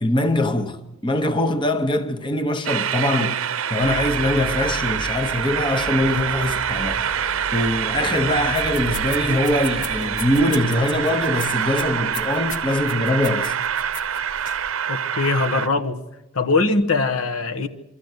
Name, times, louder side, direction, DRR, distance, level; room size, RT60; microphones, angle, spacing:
voice 1, 0.0-7.0 7.5-13.6, left 1 dB, 20° left, 0.9 m, -22 dB
Train, 2.6-15.7, right 8 dB, 75° right, 0.6 m, -25 dB
sound 1, 3.8-10.4, right 1 dB, 15° right, 1.2 m, -36 dB
sound 2, 8.4-14.7, left 3 dB, 40° left, 1.2 m, -38 dB
voice 2, 14.9-16.0 16.3-17.7, left 3 dB, 80° left, 1.2 m, -21 dB
24.0 x 14.0 x 8.1 m
head